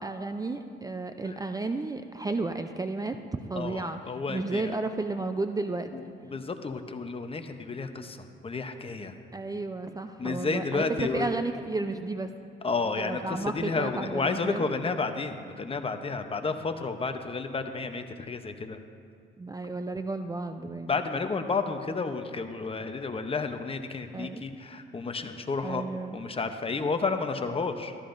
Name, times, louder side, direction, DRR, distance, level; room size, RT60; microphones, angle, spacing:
voice 1, 0.0-5.9 9.3-12.3 13.0-14.7 19.4-20.9 24.1-24.4 25.6-26.2, right 3 dB, 20° right, 7 dB, 0.4 m, -33 dB
voice 2, 3.5-4.7 5.9-9.1 10.2-11.3 12.6-18.8 20.9-25.8 26.1-28.0, left 4 dB, 30° left, 7 dB, 0.7 m, -31 dB
13.5 x 13.0 x 2.6 m, 2.5 s
cardioid pair, 90°, 20 cm